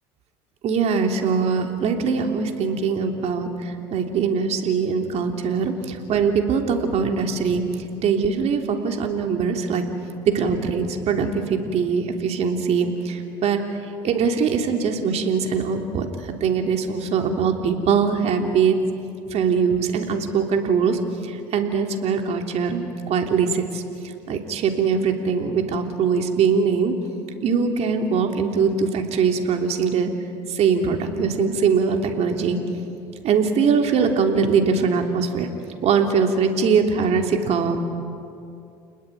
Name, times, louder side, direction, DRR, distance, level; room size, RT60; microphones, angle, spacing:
voice 1, 0.6-3.5 3.9-7.6 8.0-9.8 10.3-13.6 14.0-16.1 16.4-18.8 19.3-21.0 21.5-23.8 24.3-26.9 27.4-30.1 30.5-32.6 33.2-35.5 35.8-37.8, right 5 dB, 55° right, 4 dB, 3.3 m, -22 dB
30.0 x 20.5 x 9.3 m, 2.6 s
supercardioid pair, 90°, 13 cm